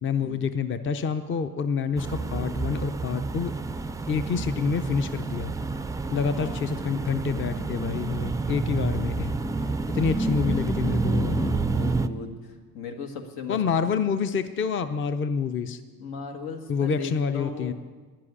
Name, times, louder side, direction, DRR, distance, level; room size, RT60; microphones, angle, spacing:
voice 1, 0.0-3.5 4.1-5.5 6.1-9.3 9.9-11.6 13.5-15.8 16.7-17.7, left 6 dB, 35° left, 11 dB, 0.6 m, -27 dB
sound 1, 2.0-12.1, right 3 dB, 10° right, 0.3 m, -29 dB
voice 2, 2.1-2.5 6.0-6.6 11.2-13.6 16.0-17.7, left 5 dB, 85° left, 5 dB, 1.7 m, -38 dB
10.5 x 7.6 x 9.7 m, 1.4 s
cardioid pair, 115°, 36 cm